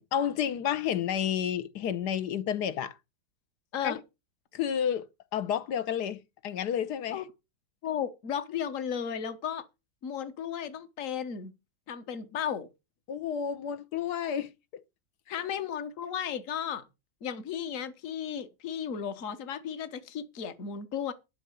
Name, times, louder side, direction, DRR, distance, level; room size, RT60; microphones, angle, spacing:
voice 1, 0.0-3.0 3.8-3.9 4.5-5.1 5.3-7.2 13.1-14.8, left 9 dB, 80° left, 1.5 m, -30 dB
voice 2, 7.8-9.6 10.0-11.5 11.9-12.7 15.3-16.9 17.2-21.1, left 8 dB, 55° left, 1.5 m, -34 dB
11.5 x 5.8 x 8.1 m
omnidirectional pair, 1.8 m